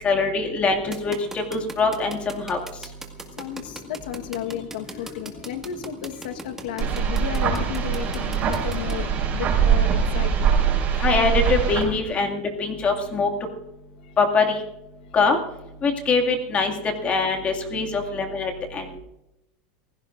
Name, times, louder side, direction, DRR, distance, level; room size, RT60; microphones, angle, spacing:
voice 1, 0.0-2.6 11.0-13.3 14.2-14.6 15.1-15.4 15.8-16.7 17.0-18.8, left 4 dB, 25° left, 3 dB, 2.3 m, -23 dB
sound 1, 0.9-8.9, right 3 dB, 10° right, 1.9 m, -38 dB
voice 2, 3.4-10.5, left 10 dB, 85° left, 6 dB, 1.4 m, -33 dB
sound 2, 6.8-11.8, right 7 dB, 30° right, 5.5 m, -22 dB
29.0 x 16.0 x 2.6 m, 0.90 s
supercardioid pair, 145°, 5 cm